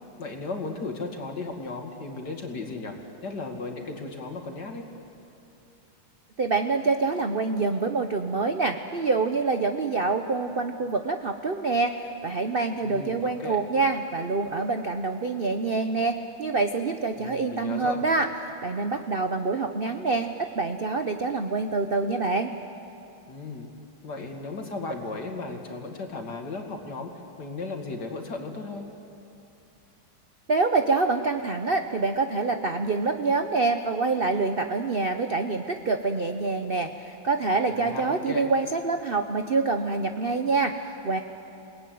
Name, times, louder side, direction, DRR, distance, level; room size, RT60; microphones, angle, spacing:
voice 1, 0.2-3.0 3.2-4.9 12.8-13.6 17.2-18.0 23.3-23.7 24.0-27.1 27.4-28.9 37.7-38.5, left 3 dB, 55° left, 3 dB, 2.8 m, -35 dB
voice 2, 6.4-18.3 18.6-22.5 30.5-41.2, right 3 dB, 45° right, 7 dB, 0.7 m, -26 dB
29.0 x 19.0 x 9.4 m, 2.7 s
omnidirectional pair, 2.2 m